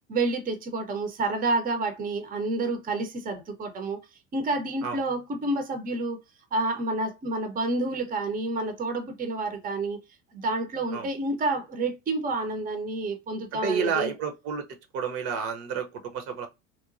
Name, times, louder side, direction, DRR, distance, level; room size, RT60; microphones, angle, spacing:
voice 1, 0.1-4.0 4.3-6.2 6.5-10.0 10.3-14.1, right 2 dB, 25° right, 0.6 m, -29 dB
voice 2, 13.5-14.6 14.9-16.5, right 6 dB, 55° right, 0.8 m, -30 dB
3.0 x 2.1 x 2.5 m
hypercardioid pair, 70°, 38 cm